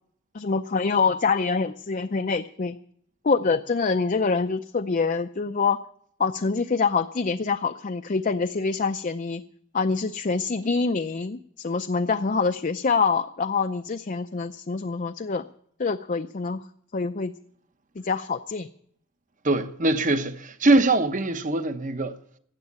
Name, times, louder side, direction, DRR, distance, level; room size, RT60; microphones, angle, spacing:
voice 1, 0.3-2.8 3.2-5.8 6.2-9.4 9.7-15.4 15.8-16.6 16.9-17.3 18.0-18.7, left 4 dB, 40° left, 0.5 m, -25 dB
voice 2, 19.4-22.2, right 2 dB, 35° right, 0.9 m, -22 dB
15.5 x 8.4 x 9.5 m
head